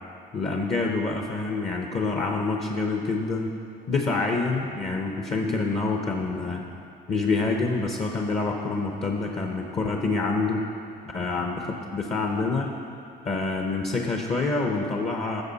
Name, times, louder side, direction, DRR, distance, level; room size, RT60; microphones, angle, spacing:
voice 1, 0.3-3.5 3.9-6.7 7.1-10.7 11.1-12.7 13.2-15.4, left 3 dB, 35° left, 1 dB, 0.9 m, -27 dB
14.5 x 6.5 x 4.1 m, 2.5 s
cardioid pair, 110°, 17 cm